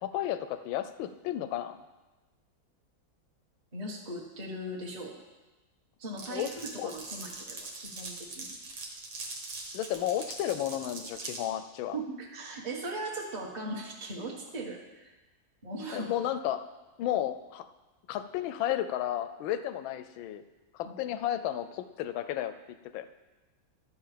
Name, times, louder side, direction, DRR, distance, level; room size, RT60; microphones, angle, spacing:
voice 1, 0.0-1.8 6.3-6.5 6.8-6.9 9.7-12.0 15.9-16.6 17.0-17.7 18.1-20.4 20.7-22.5 22.9-23.0, left 12 dB, 85° left, 11 dB, 1.4 m, -32 dB
voice 2, 3.7-5.1 6.0-8.5 11.9-15.1 15.6-16.1 20.8-20.9, right 2 dB, 25° right, -3 dB, 1.2 m, -39 dB
Glass, 6.2-11.4, right 3 dB, 80° right, 2.1 m, -42 dB
11.5 x 6.7 x 5.0 m, 1.1 s
omnidirectional pair, 2.1 m